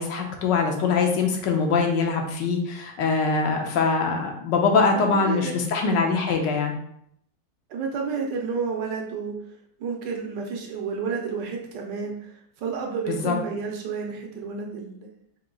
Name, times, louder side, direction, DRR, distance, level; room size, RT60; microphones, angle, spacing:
voice 1, 0.0-6.7 13.1-13.4, left 4 dB, 85° left, 2 dB, 1.4 m, -23 dB
voice 2, 5.2-5.5 7.7-9.4 9.8-15.1, right 5 dB, 80° right, 1 dB, 1.4 m, -31 dB
4.7 x 2.3 x 3.7 m, 0.70 s
omnidirectional pair, 1.9 m